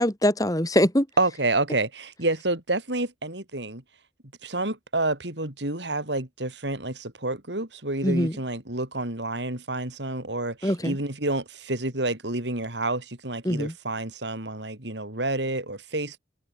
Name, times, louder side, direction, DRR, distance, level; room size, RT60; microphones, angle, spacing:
voice 1, 0.0-1.1 8.0-8.4 10.6-11.0 13.4-13.8, equal, 20° left, 3.9 m, -23 dB
voice 2, 1.2-3.8 4.4-16.2, right 2 dB, 75° right, 5.0 m, -29 dB
head